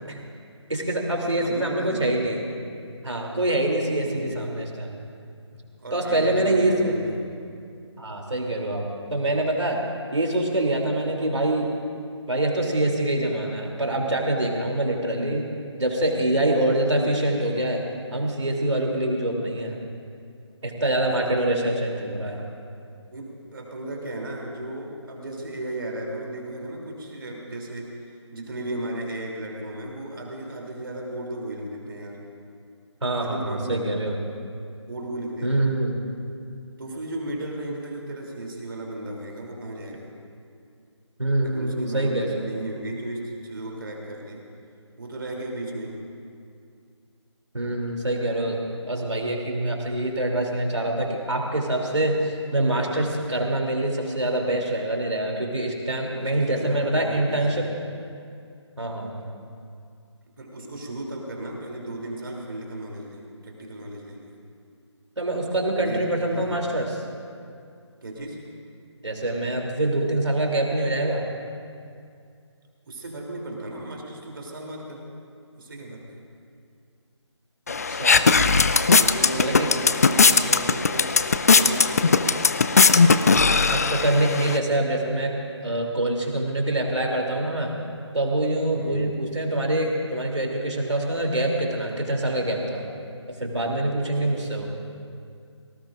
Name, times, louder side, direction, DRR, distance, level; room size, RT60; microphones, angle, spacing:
voice 1, 0.7-2.4 3.0-4.9 5.9-6.9 8.0-9.8 10.1-11.7 12.3-15.5 15.8-17.8 18.1-19.8 20.6-22.4 33.0-34.2 35.4-35.9 41.2-42.5 47.5-48.6 48.9-57.7 58.8-59.3 65.2-67.0 69.0-71.3 77.7-78.2 79.3-79.7 83.7-87.8 88.1-92.9 93.3-94.7, right 1 dB, 75° right, 0 dB, 3.1 m, -25 dB
voice 2, 1.4-2.3 4.0-4.4 5.8-7.4 21.1-21.9 22.2-22.5 23.1-27.9 28.3-32.2 33.1-33.9 34.9-35.6 36.8-40.1 41.4-44.4 45.0-46.0 56.1-57.7 60.4-64.3 65.8-66.8 68.0-68.4 72.9-75.0 75.5-76.2 78.9-81.1 81.5-82.4 88.7-89.1 94.0-94.4, right 1 dB, 50° right, -1 dB, 3.2 m, -35 dB
sound 1, 77.7-84.6, left 4 dB, 35° left, 0.4 m, -19 dB
25.5 x 19.0 x 2.6 m, 2.4 s
figure-of-eight pair, 155°, 15 cm